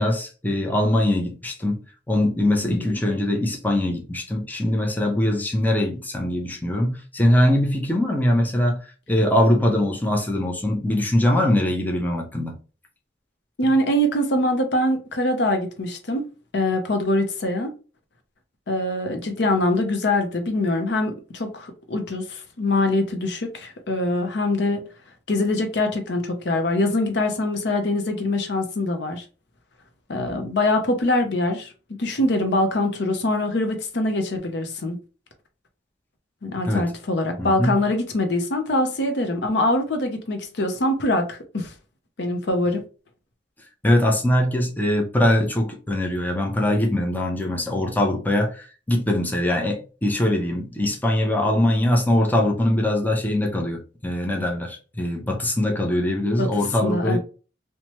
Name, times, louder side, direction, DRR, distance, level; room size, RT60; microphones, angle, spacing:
voice 1, 0.0-1.8 2.1-8.8 9.1-12.6 36.7-36.9 37.4-37.7 43.8-57.2, left 1 dB, 10° left, 0.5 m, -22 dB
voice 2, 2.6-2.9 13.6-16.3 16.5-17.7 18.7-24.8 25.3-29.2 30.1-35.0 36.4-41.7 42.2-42.8 56.4-56.5 56.8-57.2, left 1 dB, 70° left, 0.6 m, -23 dB
2.9 x 2.2 x 3.0 m
head